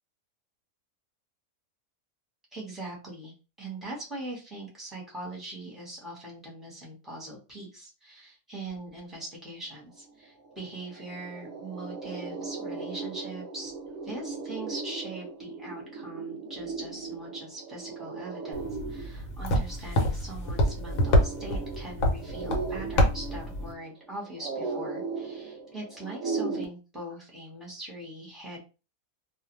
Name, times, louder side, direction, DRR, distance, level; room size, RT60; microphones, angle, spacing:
voice 1, 2.5-13.7 14.0-28.6, right 2 dB, ahead, -4 dB, 0.8 m, -41 dB
sound 1, 10.1-10.2 10.5-26.6, right 4 dB, 65° right, 0.8 m, -37 dB
sound 2, 18.5-23.7, equal, 70° left, 1.1 m, -27 dB
2.5 x 2.1 x 2.9 m, 0.31 s
omnidirectional pair, 1.5 m